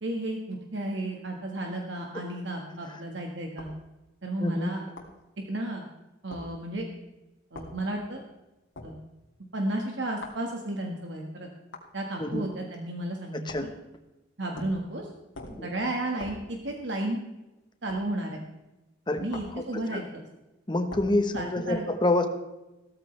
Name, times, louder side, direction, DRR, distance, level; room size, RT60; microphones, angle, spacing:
voice 1, 0.0-3.7 4.2-4.8 5.5-5.8 6.2-6.9 7.5-8.2 8.8-9.0 9.5-11.5 11.9-13.7 14.4-15.1 15.6-17.2 17.8-18.4 19.2-20.2 21.3-21.8, right 1 dB, 65° right, 1 dB, 1.7 m, -33 dB
sound 1, 3.6-3.8 5.0-5.2 6.3-6.5 7.5-7.8 8.8-9.0 10.2-10.4 11.7-11.9 13.5-13.8 14.6-14.9 15.3-15.7 16.2-16.5 17.9-18.1 19.3-19.6 20.9-21.2, left 2 dB, 85° left, 2.5 m, -43 dB
voice 2, 4.4-4.7 12.2-12.4 13.5-13.7 15.6-15.7 19.1-19.2 19.6-20.0 20.7-22.3, left 2 dB, 25° left, 6 dB, 1.2 m, -27 dB
16.0 x 14.0 x 3.4 m, 1.0 s
head